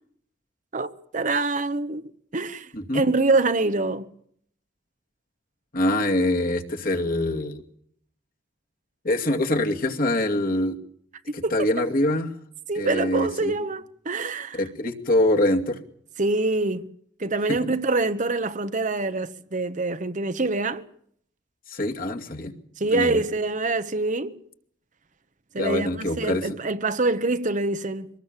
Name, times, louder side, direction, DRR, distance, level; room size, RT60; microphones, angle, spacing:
voice 1, 0.7-2.0 2.3-4.1 11.3-11.7 12.7-14.6 16.2-16.9 17.2-20.8 22.8-24.3 25.5-28.1, right 3 dB, 40° right, 1.0 m, -25 dB
voice 2, 2.7-3.0 5.7-7.6 9.0-10.8 11.3-12.3 12.8-13.5 14.5-15.8 17.5-17.6 21.7-22.5 22.9-23.2 25.5-26.5, left 1 dB, 45° left, 2.4 m, -24 dB
24.5 x 19.5 x 7.5 m
head